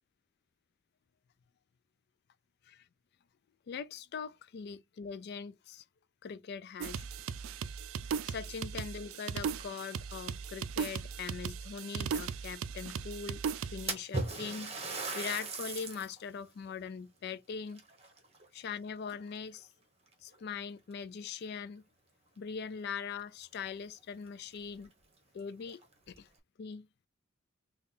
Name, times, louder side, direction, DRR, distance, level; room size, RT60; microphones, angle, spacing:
voice 1, 3.7-5.8 6.2-7.0 8.2-13.4 13.7-17.8 18.5-19.7 20.2-21.8 22.4-24.9 25.3-25.8 26.1-26.3 26.6-26.9, left 6 dB, 55° left, 0.3 m, -41 dB
sound 1, 6.8-13.9, right 6 dB, 90° right, 0.4 m, -38 dB
Splash splatter, 13.9-16.2 16.7-16.8 17.7-18.7 19.1-19.5 20.3-20.4 20.9-21.0 23.2-23.3 23.6-23.7 24.3-24.4 24.8-24.9 25.6-26.2, right 3 dB, 30° right, 1.0 m, -38 dB
3.7 x 2.3 x 3.8 m
head